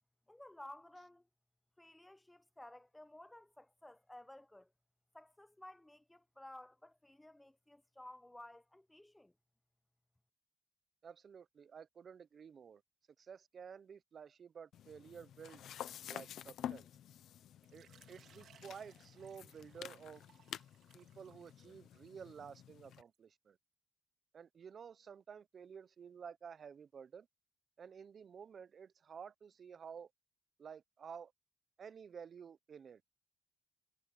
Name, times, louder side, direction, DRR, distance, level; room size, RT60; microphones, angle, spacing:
voice 1, 0.3-1.3 1.8-4.7 5.1-9.3, left 1 dB, 10° left, 0.8 m, -55 dB
voice 2, 11.0-12.8 13.2-15.6 16.0-16.9 17.7-20.2 20.9-23.6 24.3-27.3 27.8-30.1 30.6-31.3 31.8-33.0, right 7 dB, 50° right, 0.7 m, -52 dB
sound 1, 14.7-23.0, left 10 dB, 75° left, 1.0 m, -50 dB
Water / Liquid, 17.6-23.2, right 9 dB, 70° right, 2.8 m, -67 dB
cardioid pair, 90°, 0 cm